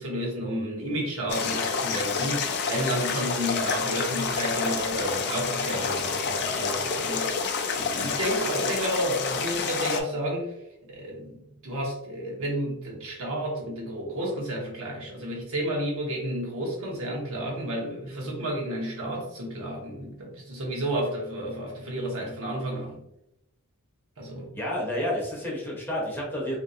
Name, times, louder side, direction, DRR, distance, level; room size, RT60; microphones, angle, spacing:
voice 1, 0.0-7.5 7.8-10.5 10.8-23.0 24.2-24.5, equal, 65° right, -2 dB, 0.9 m, -31 dB
sound 1, 1.3-10.0, left 5 dB, 50° left, 0.4 m, -28 dB
voice 2, 24.5-26.6, left 1 dB, 10° left, -3 dB, 0.7 m, -30 dB
2.8 x 2.6 x 2.6 m, 0.83 s
head